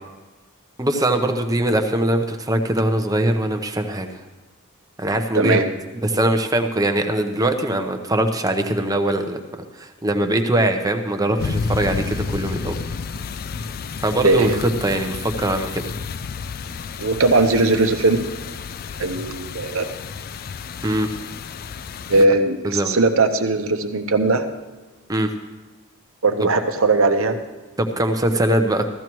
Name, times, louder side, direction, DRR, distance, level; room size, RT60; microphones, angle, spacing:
voice 1, 0.8-4.1 5.0-5.6 6.0-12.8 14.0-14.5 14.8-15.9 20.8-21.1 22.6-23.0 25.1-25.3 26.4-26.5 27.8-28.8, right 1 dB, 15° right, 6 dB, 0.8 m, -21 dB
voice 2, 5.3-5.7 14.2-14.6 17.0-18.2 19.0-19.9 22.1-24.5 26.2-27.4, right 3 dB, 70° right, 6 dB, 1.0 m, -19 dB
sound 1, 11.4-22.3, left 5 dB, 45° left, 0.3 m, -31 dB
15.5 x 13.5 x 3.1 m, 1.2 s
head